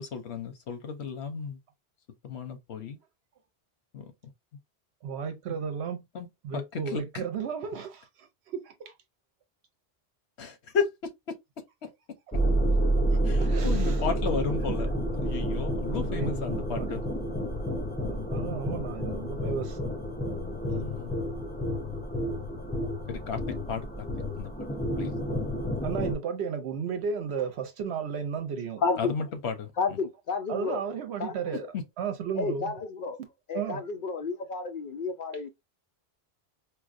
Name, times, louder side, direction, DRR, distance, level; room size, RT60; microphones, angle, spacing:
voice 1, 0.0-1.6 2.2-3.0 3.9-4.0 6.1-6.3 6.5-6.6 6.9-7.2 10.4-10.9 13.3-14.9 15.2-17.0 18.4-18.6 20.6-21.1 23.1-23.4 23.7-23.9 24.4-24.5 25.0-25.1 29.0-29.7 31.7-31.8, left 6 dB, 85° left, 1.1 m, -33 dB
voice 2, 5.0-6.0 6.4-8.9 13.4-14.1 14.6-14.8 15.7-17.1 18.1-19.8 25.8-28.8 30.5-32.7 33.2-33.3 33.5-33.8, right 6 dB, 80° right, 0.9 m, -34 dB
sound 1, 12.3-26.2, right 1 dB, 15° left, 0.3 m, -29 dB
voice 3, 28.8-29.1 29.8-30.8 31.2-31.3 32.4-33.2 33.5-35.5, left 4 dB, 60° left, 0.6 m, -31 dB
4.4 x 2.2 x 2.5 m
omnidirectional pair, 1.1 m